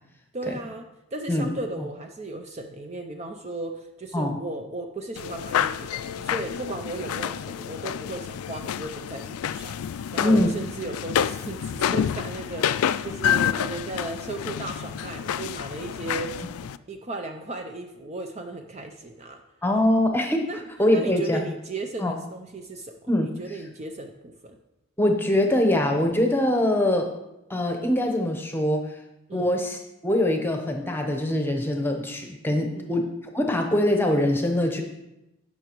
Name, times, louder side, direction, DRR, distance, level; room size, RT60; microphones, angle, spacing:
voice 1, 0.3-16.4 16.9-19.4 20.5-20.6 20.9-22.9 23.2-24.6 29.3-29.5 32.7-32.9, right 2 dB, 30° right, 5 dB, 0.5 m, -36 dB
sound 1, 5.2-16.8, left 9 dB, 85° left, 0.3 m, -29 dB
voice 2, 19.6-20.5 20.8-21.4 22.0-22.1 23.1-23.6 25.0-27.1 27.5-29.0 29.3-34.8, left 1 dB, 10° left, 3 dB, 0.9 m, -23 dB
16.5 x 5.8 x 3.0 m, 0.91 s
head